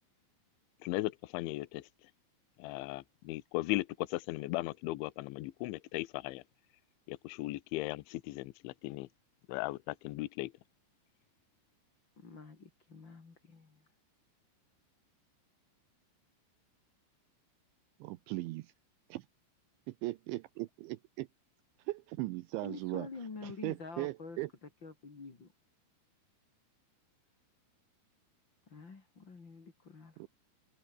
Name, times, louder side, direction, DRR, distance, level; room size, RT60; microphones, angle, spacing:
voice 1, 0.8-2.1 2.6-6.4 7.1-9.1 9.5-10.5, left 19 dB, 75° left, 3.2 m, -37 dB
voice 2, 12.2-13.9 22.6-25.5 28.7-30.2, left 4 dB, 30° left, 2.7 m, -48 dB
voice 3, 18.0-18.7 19.1-19.3 20.0-21.3 21.9-23.1 23.4-24.5 30.2-30.3, right 20 dB, 80° right, 2.8 m, -38 dB
open air
omnidirectional pair, 5.8 m